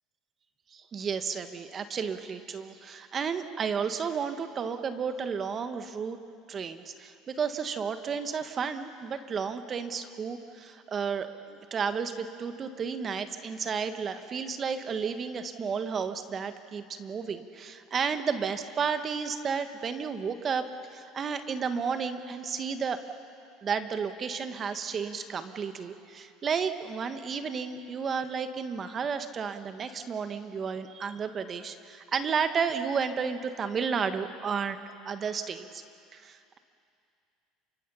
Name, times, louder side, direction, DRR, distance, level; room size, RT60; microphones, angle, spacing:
voice 1, 0.7-6.2 6.5-23.0 23.6-34.8 35.0-35.8 36.1-36.6, right 6 dB, 35° right, 9 dB, 1.5 m, -32 dB
28.0 x 24.0 x 5.7 m, 2.4 s
supercardioid pair, 95°, 0 cm